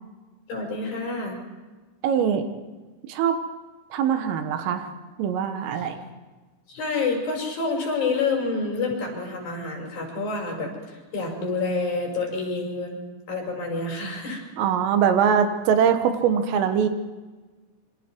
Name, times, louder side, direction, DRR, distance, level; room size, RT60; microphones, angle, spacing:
voice 1, 0.5-1.4 5.8-5.9 6.7-13.0 13.3-14.4, left 3 dB, 45° left, 0 dB, 6.9 m, -28 dB
voice 2, 2.0-2.4 3.1-3.4 3.9-4.9 5.2-6.0 14.6-16.9, right 7 dB, 85° right, 7 dB, 4.1 m, -22 dB
26.5 x 25.5 x 4.7 m, 1.3 s
omnidirectional pair, 5.7 m